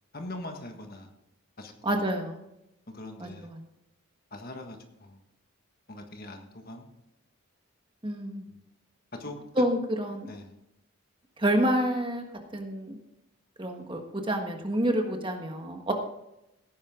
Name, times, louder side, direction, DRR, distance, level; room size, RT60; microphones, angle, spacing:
voice 1, 0.1-1.1 1.6-2.1 2.9-3.5 4.3-5.2 5.9-6.9 8.5-8.6 9.2-9.4 10.3-10.6, left 1 dB, 45° left, 4 dB, 1.6 m, -42 dB
voice 2, 1.8-2.4 3.2-3.6 8.0-8.5 9.6-10.3 11.4-12.2 12.5-13.0 13.6-15.9, right 1 dB, 25° right, 4 dB, 1.4 m, -28 dB
17.0 x 9.6 x 3.8 m, 0.87 s
head